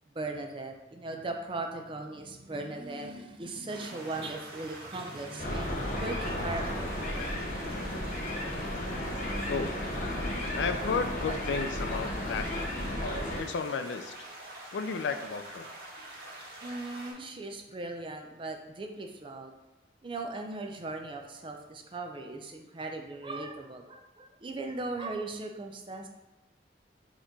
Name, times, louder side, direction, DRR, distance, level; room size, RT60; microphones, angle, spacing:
voice 1, 0.1-7.2 16.6-19.5 20.0-26.1, right 2 dB, 30° right, 3 dB, 0.5 m, -38 dB
sound 1, 3.7-17.1, right 1 dB, 60° right, 1.3 m, -46 dB
sound 2, 5.4-13.4, left 1 dB, 45° left, 0.7 m, -33 dB
voice 2, 10.5-12.7 13.4-14.1 14.7-15.7, left 5 dB, 80° left, 8 dB, 0.4 m, -33 dB
4.2 x 3.0 x 3.9 m, 1.0 s
head